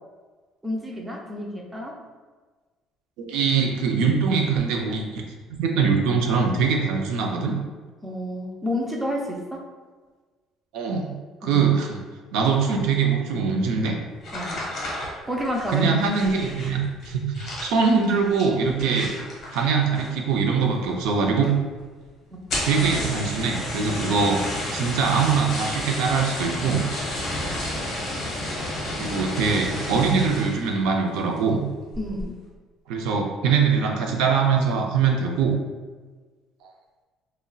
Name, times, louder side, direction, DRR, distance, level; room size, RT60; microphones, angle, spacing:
voice 1, 0.6-2.0 8.0-9.6 11.4-11.7 14.3-14.6 15.3-16.0 22.3-22.4 32.0-32.4, left 1 dB, 10° right, -1 dB, 0.4 m, -29 dB
voice 2, 3.2-5.2 5.5-7.5 10.7-11.1 11.4-12.0 12.3-14.0 15.7-16.8 17.0-19.1 19.5-21.5 22.6-24.4 24.7-26.8 28.9-31.6 32.9-35.6, right 5 dB, 85° right, 1 dB, 0.4 m, -22 dB
sound 1, 14.2-20.3 20.6-21.1 21.4-21.5 21.8-21.9 22.3-30.7 31.1-31.5 31.9-32.3, left 1 dB, 35° left, 0.9 m, -31 dB
3.7 x 2.0 x 2.3 m, 1.4 s
cardioid pair, 175°, 0 cm